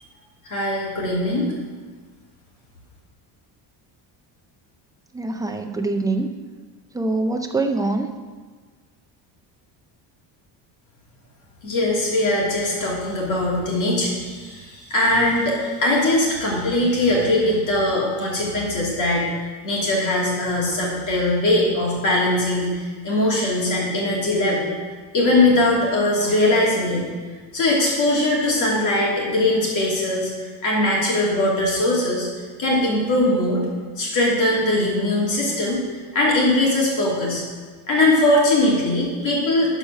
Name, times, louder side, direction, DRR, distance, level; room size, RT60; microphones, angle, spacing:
voice 1, 0.5-1.5 11.6-19.3 19.6-24.7 25.1-27.1 27.5-30.3 30.6-32.3 32.6-33.6 34.0-35.8 36.1-37.4 37.9-39.8, left 1 dB, 40° left, -4 dB, 2.9 m, -20 dB
voice 2, 5.1-6.3 6.9-8.1, right 2 dB, 10° right, 4 dB, 0.4 m, -24 dB
11.5 x 5.0 x 6.3 m, 1.5 s
cardioid pair, 165°, 45 cm